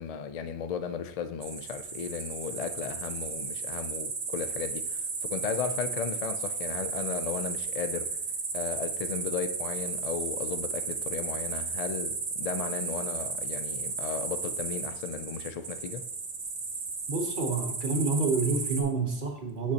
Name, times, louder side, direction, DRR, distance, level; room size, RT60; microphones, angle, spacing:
voice 1, 0.0-8.1 8.5-16.0, left 7 dB, 60° left, 9 dB, 0.4 m, -35 dB
sound 1, 1.4-18.8, right 4 dB, 75° right, 1.3 m, -34 dB
voice 2, 17.1-19.7, right 4 dB, 45° right, 3 dB, 1.1 m, -28 dB
7.9 x 6.8 x 2.8 m, 0.74 s
omnidirectional pair, 1.2 m